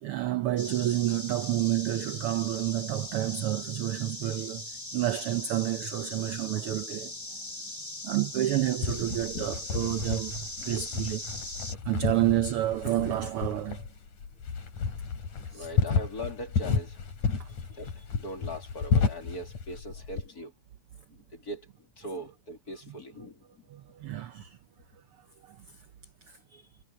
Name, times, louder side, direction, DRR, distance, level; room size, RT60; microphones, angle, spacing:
voice 1, 0.0-4.7 4.9-7.1 8.0-11.4 11.8-13.8 15.5-15.7 17.4-17.5 23.7-24.6 25.4-25.6 26.3-26.6, right 14 dB, 80° right, 1.2 m, -29 dB
sound 1, 0.6-11.8, left 2 dB, 15° left, 1.1 m, -40 dB
sound 2, 8.8-20.3, left 5 dB, 75° left, 4.9 m, -32 dB
voice 2, 15.5-17.0 17.7-17.9 18.2-20.5 21.3-23.4, left 1 dB, 30° left, 3.2 m, -40 dB
omnidirectional pair, 3.4 m